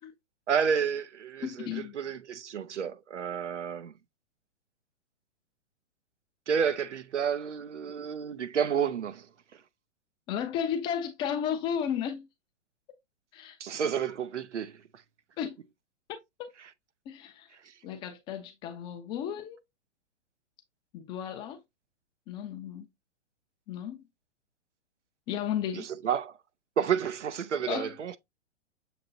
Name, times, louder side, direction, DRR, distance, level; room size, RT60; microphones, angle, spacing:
voice 1, 0.5-3.9 6.5-9.3 9.5-9.6 13.6-14.8 25.7-26.4 26.8-28.2, right 7 dB, 80° right, 0.7 m, -30 dB
voice 2, 1.4-2.0 10.3-12.3 13.3-13.6 15.4-15.5 16.1-16.5 17.1-17.5 17.8-19.6 20.9-21.6 22.3-22.9 23.7-24.0 25.3-25.9 27.7-27.9, left 8 dB, 15° left, 0.4 m, -34 dB
6.9 x 2.9 x 2.6 m
hypercardioid pair, 120°, 35 cm